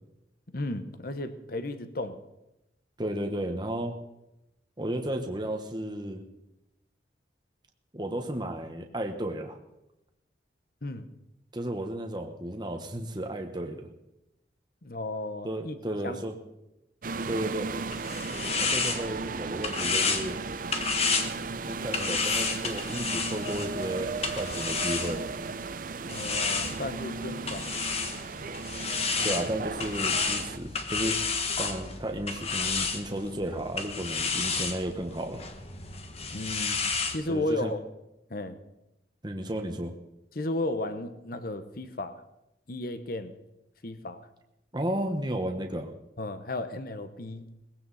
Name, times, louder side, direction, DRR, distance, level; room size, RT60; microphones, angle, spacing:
voice 1, 0.5-2.2 10.8-11.1 14.8-15.8 16.0-16.2 26.0-27.8 29.2-29.4 36.3-36.8 37.1-37.8 38.3-38.6 40.3-42.2 42.7-43.3 43.8-44.3 46.2-47.5, left 2 dB, 55° left, 10 dB, 1.1 m, -34 dB
voice 2, 3.0-3.9 4.8-6.2 7.9-9.6 11.5-13.9 15.4-16.3 17.3-17.7 18.6-20.4 21.6-25.2 29.2-35.5 37.3-37.7 39.2-39.9 44.7-45.9, right 1 dB, 25° right, 3 dB, 1.3 m, -33 dB
sound 1, 17.0-30.6, right 4 dB, 50° right, 0.6 m, -36 dB
sound 2, 17.7-25.5 26.1-37.2, left 4 dB, 35° left, 1.4 m, -31 dB
20.0 x 16.0 x 4.2 m, 0.90 s
head